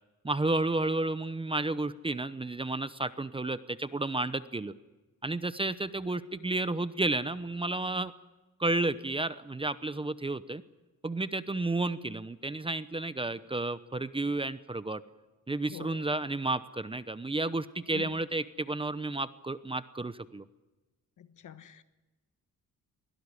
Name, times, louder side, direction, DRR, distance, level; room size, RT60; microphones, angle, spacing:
voice 1, 0.2-4.7 5.2-8.1 8.6-10.6 11.0-15.0 15.5-20.4, right 2 dB, 15° right, 0.8 m, -32 dB
voice 2, 15.6-16.0 17.9-18.2 21.2-21.8, left 9 dB, 70° left, 1.4 m, -46 dB
23.0 x 17.5 x 9.9 m
cardioid pair, 105°, 31 cm